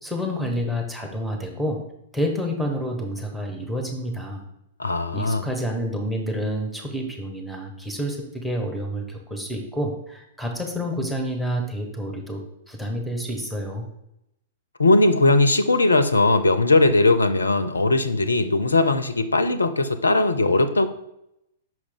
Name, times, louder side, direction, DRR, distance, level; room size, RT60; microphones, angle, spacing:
voice 1, 0.0-1.8 2.1-4.4 5.1-12.4 12.7-13.8, equal, ahead, 2 dB, 1.1 m, -28 dB
voice 2, 4.8-5.4 14.8-20.9, left 2 dB, 75° left, 12 dB, 0.4 m, -19 dB
5.9 x 4.9 x 3.6 m, 0.82 s
figure-of-eight pair, 105°, 0 cm